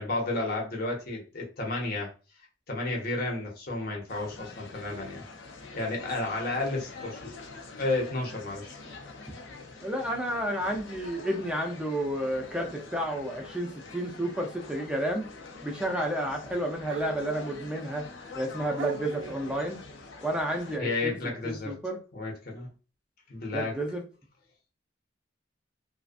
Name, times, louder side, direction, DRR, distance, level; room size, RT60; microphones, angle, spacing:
voice 1, 0.0-2.1 2.7-5.2 5.7-7.3 7.8-8.7 20.8-21.8 22.1-22.7 23.3-23.8, left 2 dB, 55° left, 0.9 m, -32 dB
sound 1, 4.1-20.8, left 3 dB, 90° left, 0.5 m, -45 dB
voice 2, 9.8-15.2 15.6-18.0 18.4-19.8 20.2-21.2 21.4-22.0 23.5-24.0, right 1 dB, 5° right, 0.5 m, -31 dB
sound 2, 9.8-9.9 11.3-11.4 12.4-12.6 15.1-15.2 16.9-17.7 18.3-18.4 18.8-19.6, right 8 dB, 85° right, 0.3 m, -40 dB
2.4 x 2.3 x 2.5 m
head